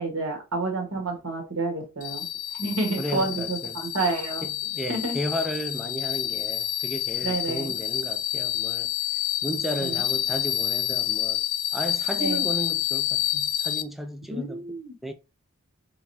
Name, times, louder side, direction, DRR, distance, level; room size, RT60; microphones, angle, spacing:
voice 1, 0.0-2.3 2.6-4.4 4.9-5.2 7.2-7.7 9.8-10.0 12.2-12.4 14.3-14.9, right 3 dB, 90° right, 1.7 m, -29 dB
sound 1, 2.0-13.8, left 11 dB, 85° left, 0.5 m, -28 dB
voice 2, 3.0-3.8 4.4-8.9 9.4-11.4 11.7-14.7 15.0-15.1, equal, ahead, 0.4 m, -34 dB
4.0 x 3.7 x 2.8 m
head